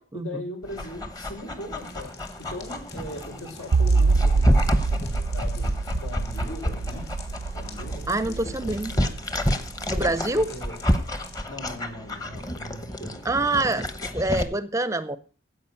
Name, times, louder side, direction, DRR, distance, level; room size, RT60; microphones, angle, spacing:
voice 1, 0.1-7.1 7.5-8.7 9.9-10.8 11.5-13.8, left 1 dB, 80° left, 1 dB, 5.6 m, -40 dB
Dog, 0.6-14.4, equal, 15° left, 1.0 m, -29 dB
sound 1, 1.8-11.4, left 6 dB, 50° left, 2.9 m, -49 dB
sound 2, 3.7-10.9, right 3 dB, 80° right, 0.5 m, -26 dB
voice 2, 8.1-9.0 9.9-10.5 13.2-13.9 14.1-15.2, right 2 dB, 15° right, 13 dB, 0.6 m, -25 dB
15.5 x 5.3 x 8.2 m, 0.40 s
head